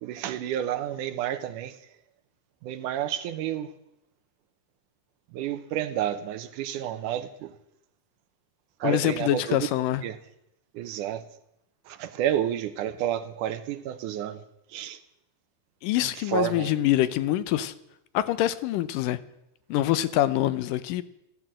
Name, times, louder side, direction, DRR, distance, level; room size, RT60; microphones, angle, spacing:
voice 1, 0.0-1.8 2.6-3.7 5.3-7.5 8.8-9.7 10.0-10.2 10.7-11.2 11.9-14.4 14.7-15.0 16.2-16.8, right 11 dB, 75° right, 2.1 m, -30 dB
voice 2, 8.8-10.0 15.8-17.7 18.1-19.2 19.7-21.0, left 13 dB, 80° left, 2.3 m, -25 dB
14.0 x 13.5 x 7.6 m
omnidirectional pair, 3.9 m